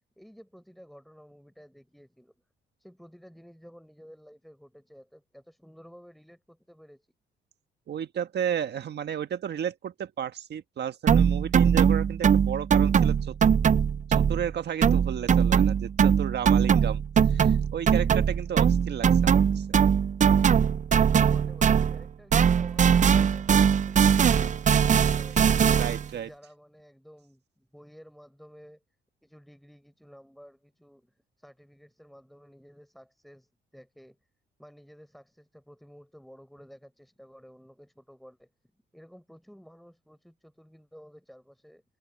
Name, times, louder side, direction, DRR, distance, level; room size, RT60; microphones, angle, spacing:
voice 1, 0.2-2.4 2.8-7.1 21.2-25.6 25.9-28.8 29.2-34.2 34.6-38.5 38.9-41.8, equal, ahead, 4.7 m, -53 dB
voice 2, 7.9-13.5 14.1-17.0 17.3-19.8 25.8-26.3, right 9 dB, 60° right, 1.5 m, -33 dB
sound 1, 11.1-14.5 14.8-22.1 22.3-26.1, right 7 dB, 40° right, 0.6 m, -21 dB
cardioid pair, 90°, 20 cm